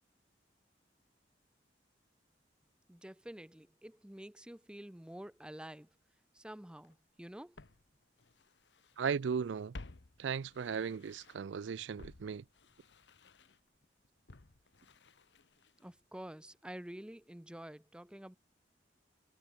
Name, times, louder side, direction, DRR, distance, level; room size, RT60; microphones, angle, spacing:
voice 1, 2.9-6.0 6.3-7.6 15.8-18.4, right 1 dB, 5° right, 0.5 m, -49 dB
Walk footsteps, 6.8-6.9 7.6-9.0 9.3-11.6 12.0-16.0 16.3-16.4, left 2 dB, 70° left, 1.1 m, -55 dB
voice 2, 9.0-9.7 10.2-12.4, right 6 dB, 80° right, 0.4 m, -36 dB
head